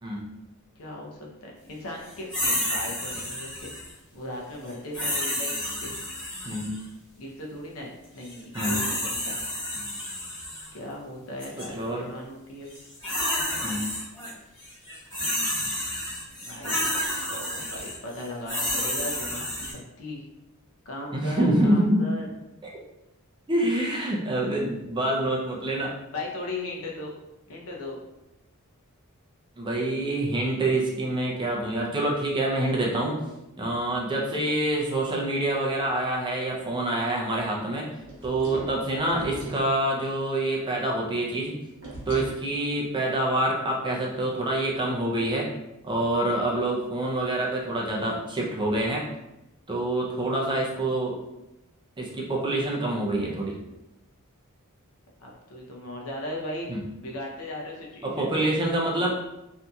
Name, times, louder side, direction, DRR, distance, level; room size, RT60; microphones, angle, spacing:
voice 1, 0.8-3.7 4.1-5.5 5.8-6.0 7.2-9.5 10.7-12.7 16.3-20.3 20.9-22.3 26.1-27.1 27.5-28.0 55.2-56.7 57.0-58.5 58.9-59.1, left 1 dB, 75° left, -1 dB, 0.7 m, -38 dB
sound 1, 2.3-3.9 4.9-6.8 8.2-10.7 11.4-11.7 12.7-14.3 14.6-19.7, left 1 dB, 20° left, 1.3 m, -30 dB
voice 2, 11.7-12.0 13.6-13.8 21.1-22.1 22.6-22.7 23.5-25.9 29.6-33.2 33.6-37.9 38.2-41.5 42.1-45.5 45.8-49.0 49.7-51.2 52.0-53.6 56.7-56.8 58.0-59.1, right 1 dB, 20° right, -2 dB, 0.5 m, -26 dB
sound 2, 38.0-39.7 41.8-42.4, right 1 dB, 55° right, 1.0 m, -39 dB
2.7 x 2.6 x 2.3 m, 0.93 s
head